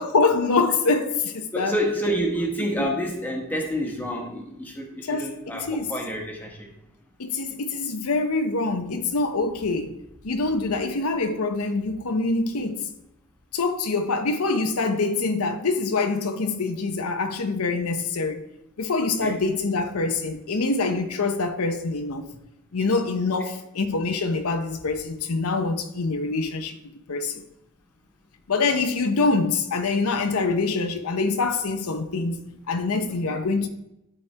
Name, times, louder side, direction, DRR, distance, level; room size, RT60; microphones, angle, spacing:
voice 1, 0.0-1.8 2.8-2.9 5.1-5.9 7.2-10.0 10.2-12.9 13.5-18.4 18.8-22.2 22.7-26.7 27.1-27.4 28.5-33.7, left 3 dB, 90° left, 0.8 m, -25 dB
voice 2, 1.5-6.7 19.2-19.4 33.3-33.4, equal, 10° left, 1.3 m, -28 dB
12.0 x 4.3 x 3.3 m
head